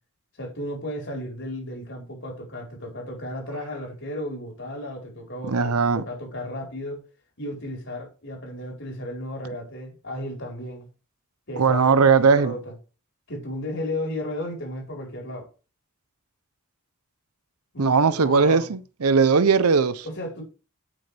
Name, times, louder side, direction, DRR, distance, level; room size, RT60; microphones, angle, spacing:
voice 1, 0.4-7.0 7.4-10.9 11.5-12.7 13.3-15.5 17.7-18.7 20.0-20.4, left 1 dB, 55° left, 4.9 m, -34 dB
voice 2, 5.5-6.0 11.6-12.5 17.8-20.0, right 5 dB, 90° right, 0.7 m, -19 dB
12.5 x 6.7 x 3.4 m
head